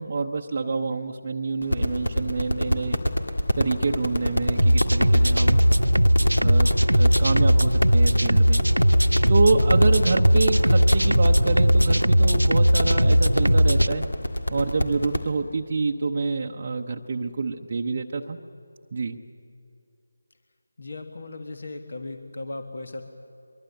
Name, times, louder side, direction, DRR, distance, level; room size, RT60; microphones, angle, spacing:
voice 1, 0.0-3.0 3.6-5.6 6.4-8.6 9.3-14.1 14.5-18.4 18.9-19.2, right 4 dB, 35° right, 2 dB, 0.9 m, -27 dB
sound 1, 1.6-15.3, left 1 dB, 70° left, 1.9 m, -26 dB
sound 2, 4.6-13.9, equal, 85° right, 0.5 m, -19 dB
voice 2, 20.8-23.0, left 2 dB, 55° left, 7 dB, 1.6 m, -37 dB
23.5 x 23.0 x 8.2 m, 2.5 s
figure-of-eight pair, 160°, 0 cm